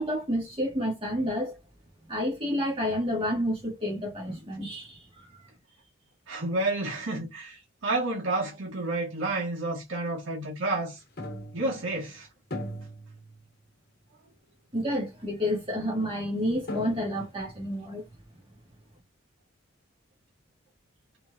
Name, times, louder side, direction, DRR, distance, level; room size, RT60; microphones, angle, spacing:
voice 1, 0.0-1.6 2.1-5.3 14.7-18.0, equal, 30° right, 1.6 m, -30 dB
voice 2, 6.3-11.0 11.5-12.3, right 2 dB, 75° right, 1.6 m, -30 dB
sound 1, 11.2-12.1 12.5-13.7 14.1-14.2 15.1-15.2 16.3-16.4 16.7-17.5, left 1 dB, 50° left, 1.0 m, -39 dB
3.9 x 3.2 x 2.4 m
head